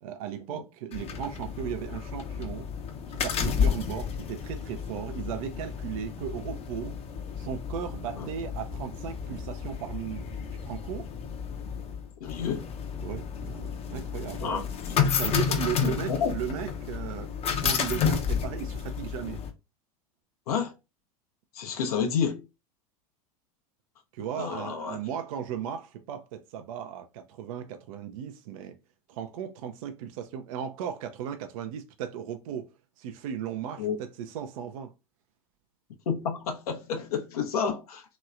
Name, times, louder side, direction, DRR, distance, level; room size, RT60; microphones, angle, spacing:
voice 1, 0.0-2.7 3.2-6.9 7.4-10.2 10.6-11.1 13.0-14.7 14.9-17.3 17.6-19.4 24.1-28.7 29.1-32.7 33.0-34.9, right 8 dB, 60° right, 0.5 m, -36 dB
sound 1, 0.9-19.5, left 7 dB, 30° left, 0.7 m, -31 dB
voice 2, 12.2-12.7 14.4-14.6 15.8-16.3 20.5-20.7 21.5-22.4 24.4-25.0 33.8-34.0 36.1-38.0, left 6 dB, 70° left, 0.8 m, -30 dB
3.0 x 3.0 x 2.4 m
hypercardioid pair, 85°, 20 cm